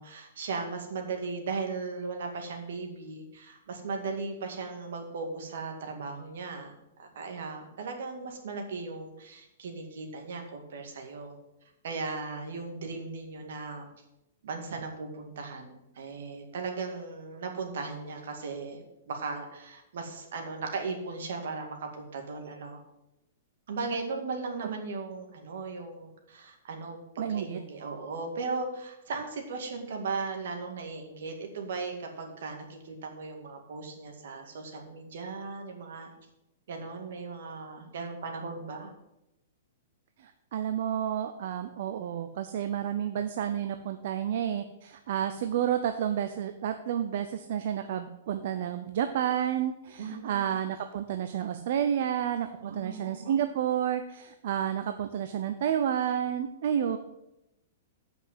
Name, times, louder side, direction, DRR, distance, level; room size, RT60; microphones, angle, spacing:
voice 1, 0.0-11.4 11.8-13.9 14.4-22.8 23.7-36.1 36.7-38.9 50.0-50.5 52.6-53.3, right 4 dB, 70° right, 3 dB, 2.0 m, -37 dB
voice 2, 27.2-27.6 40.2-57.0, right 9 dB, 55° right, 8 dB, 0.6 m, -30 dB
7.8 x 5.9 x 7.5 m, 0.88 s
hypercardioid pair, 160°, 0 cm